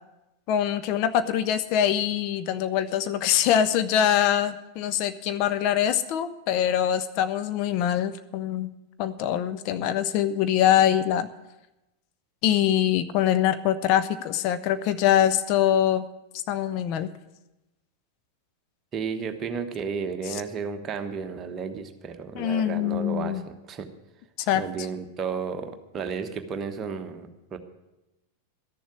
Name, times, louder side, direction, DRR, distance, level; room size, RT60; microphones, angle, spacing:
voice 1, 0.5-8.7 9.0-11.3 12.4-16.1 16.3-17.1 20.3-20.4 22.3-23.4 24.5-24.6, left 10 dB, 45° left, 11 dB, 0.6 m, -24 dB
voice 2, 18.9-23.9 24.5-27.6, right 6 dB, 25° right, 6 dB, 1.2 m, -33 dB
13.0 x 7.1 x 9.3 m, 0.97 s
figure-of-eight pair, 90°, 0 cm